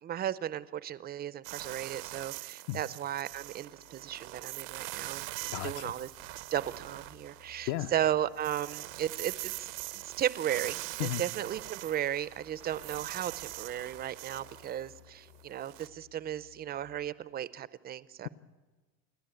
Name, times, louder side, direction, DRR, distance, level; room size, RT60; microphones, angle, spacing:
voice 1, 0.0-6.1 6.5-18.3, right 11 dB, 25° right, 18 dB, 0.5 m, -35 dB
sound 1, 1.4-7.9 8.2-15.9, right 20 dB, 80° right, 0.9 m, -42 dB
sound 2, 3.3-17.0, left 10 dB, 85° left, 3.8 m, -61 dB
voice 2, 5.5-5.9 7.7-7.9 11.0-11.2, left 14 dB, 50° left, 13 dB, 0.8 m, -34 dB
28.0 x 11.5 x 9.0 m, 1.3 s
supercardioid pair, 135°, 39 cm